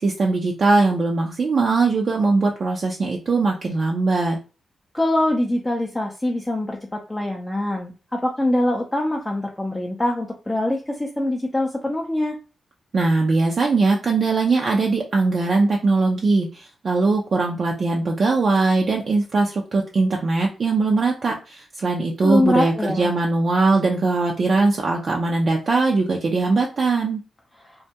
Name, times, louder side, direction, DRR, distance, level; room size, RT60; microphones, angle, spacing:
voice 1, 0.0-4.4 12.9-27.2, right 3 dB, 55° right, 0 dB, 0.4 m, -20 dB
voice 2, 4.9-12.4 22.2-23.1, left 1 dB, 15° left, 0 dB, 0.4 m, -23 dB
2.2 x 2.1 x 2.7 m, 0.34 s
cardioid pair, 65°, 0 cm